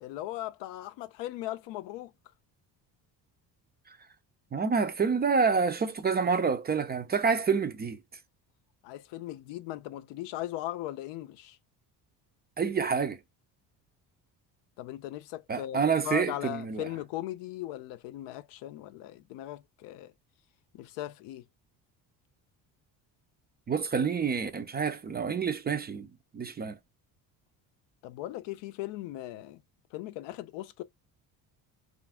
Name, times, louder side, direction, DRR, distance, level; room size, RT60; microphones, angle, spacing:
voice 1, 0.0-2.1 8.8-11.6 14.8-20.1 20.7-21.5 28.0-29.6 29.9-30.8, left 15 dB, 80° left, 0.5 m, -38 dB
voice 2, 4.5-8.0 12.6-13.2 15.5-16.9 23.7-26.1 26.3-26.8, right 5 dB, 25° right, 0.4 m, -28 dB
2.5 x 2.5 x 3.3 m
supercardioid pair, 90°, 43 cm